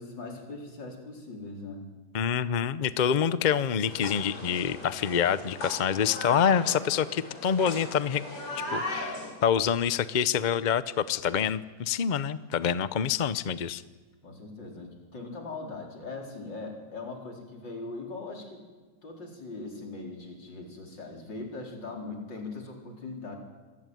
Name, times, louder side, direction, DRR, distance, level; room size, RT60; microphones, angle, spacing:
voice 1, 0.0-1.9 14.2-18.6 19.0-23.4, left 3 dB, 85° left, 1 dB, 5.0 m, -40 dB
voice 2, 2.1-8.2 8.5-13.8, left 8 dB, 50° left, 15 dB, 0.5 m, -26 dB
sound 1, 3.8-9.3, left 1 dB, 65° left, 5.4 m, -38 dB
26.5 x 19.0 x 9.3 m, 1.3 s
omnidirectional pair, 1.9 m